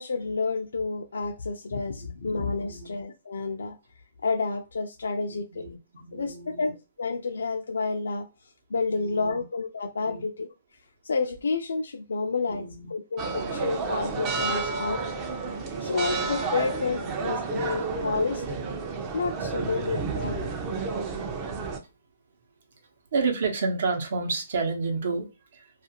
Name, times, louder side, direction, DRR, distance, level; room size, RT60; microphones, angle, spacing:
voice 1, 0.0-3.8 4.2-5.8 6.1-10.5 11.0-13.2 13.5-15.0 15.8-18.6 19.1-20.5, left 4 dB, 85° left, 0.3 m, -30 dB
voice 2, 2.0-2.3 2.6-2.9 5.3-6.7 8.9-9.4 10.0-10.2 12.5-12.9 13.2-13.8 15.7-16.9 19.3-20.1 23.1-25.6, right 4 dB, 65° right, 0.8 m, -32 dB
sound 1, 13.2-21.8, right 4 dB, 25° right, 0.4 m, -31 dB
2.4 x 2.3 x 2.8 m
hypercardioid pair, 155°, 0 cm